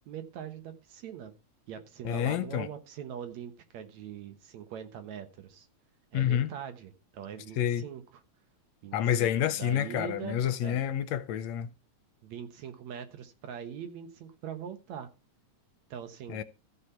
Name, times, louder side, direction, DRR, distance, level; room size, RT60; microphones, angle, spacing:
voice 1, 0.1-1.3 1.7-5.7 6.1-8.0 8.8-10.8 12.2-15.1 15.9-16.4, right 8 dB, 70° right, 2.5 m, -42 dB
voice 2, 2.1-2.7 6.1-6.5 7.6-7.8 8.9-11.7 16.3-16.4, left 10 dB, 75° left, 1.9 m, -28 dB
14.0 x 5.4 x 5.7 m
omnidirectional pair, 3.3 m